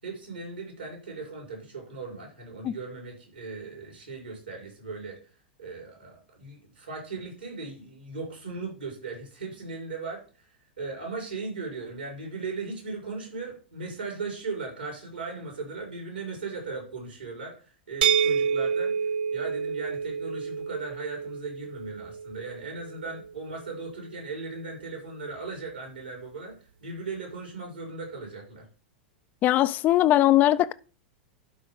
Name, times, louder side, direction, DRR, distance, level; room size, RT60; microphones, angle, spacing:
voice 1, 0.0-5.2 5.6-28.7, right 3 dB, 80° right, 5.3 m, -38 dB
sound 1, 18.0-23.8, right 7 dB, 65° right, 0.4 m, -29 dB
voice 2, 29.4-30.7, left 14 dB, 30° left, 0.4 m, -20 dB
12.0 x 4.9 x 3.9 m
figure-of-eight pair, 95°, 5 cm